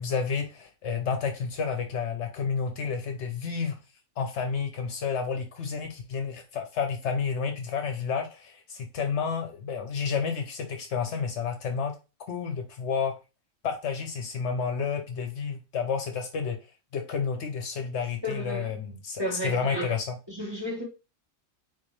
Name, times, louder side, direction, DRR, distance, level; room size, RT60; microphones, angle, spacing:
voice 1, 0.0-3.8 4.2-12.0 12.3-13.1 13.6-16.6 16.9-20.2, left 6 dB, 70° left, 0.8 m, -30 dB
voice 2, 18.2-18.7 19.2-19.9 20.3-20.8, equal, 20° right, 1.0 m, -32 dB
3.9 x 2.6 x 3.1 m
omnidirectional pair, 1.3 m